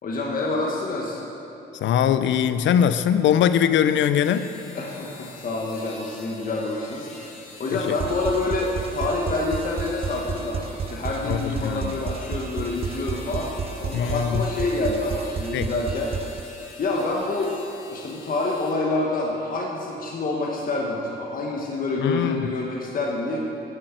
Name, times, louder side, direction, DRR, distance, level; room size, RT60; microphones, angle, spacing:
voice 1, 0.0-1.2 4.7-10.6 10.9-16.1 16.8-17.5 17.9-23.4, left 2 dB, 45° left, -2 dB, 1.3 m, -27 dB
voice 2, 1.8-4.5 7.7-8.0 11.3-11.9 13.9-14.4 15.5-15.7 22.0-22.4, left 9 dB, 70° left, 12 dB, 0.6 m, -21 dB
sound 1, 4.1-18.8, left 3 dB, 90° left, 1.7 m, -45 dB
sound 2, 8.0-16.4, right 6 dB, 30° right, 0.4 m, -32 dB
10.5 x 6.3 x 7.9 m, 2.9 s
cardioid pair, 90°, 20 cm